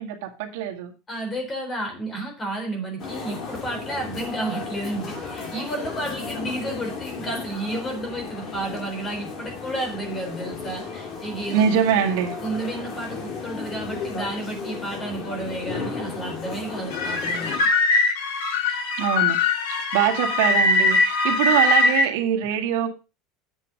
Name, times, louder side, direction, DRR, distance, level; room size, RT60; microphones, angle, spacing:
voice 1, 0.0-0.9 11.5-12.4 19.0-19.4 19.9-22.9, right 9 dB, 75° right, 4 dB, 1.9 m, -23 dB
voice 2, 1.1-11.6 12.4-17.7, right 1 dB, 15° left, 3 dB, 3.8 m, -31 dB
sound 1, 3.0-17.6, left 5 dB, 35° left, 3.0 m, -34 dB
sound 2, 16.9-22.1, left 3 dB, 75° left, 5.6 m, -21 dB
9.1 x 7.8 x 5.1 m, 0.30 s
cardioid pair, 165°, 0 cm